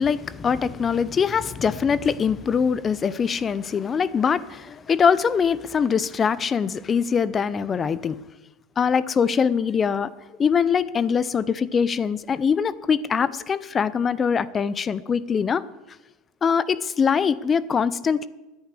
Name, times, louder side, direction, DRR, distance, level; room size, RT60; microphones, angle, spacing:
voice 1, 0.0-8.2 8.8-10.1 10.4-15.6 16.4-18.3, left 6 dB, 30° left, 18 dB, 0.6 m, -23 dB
10.0 x 10.0 x 9.9 m, 1.1 s
supercardioid pair, 110°, 0 cm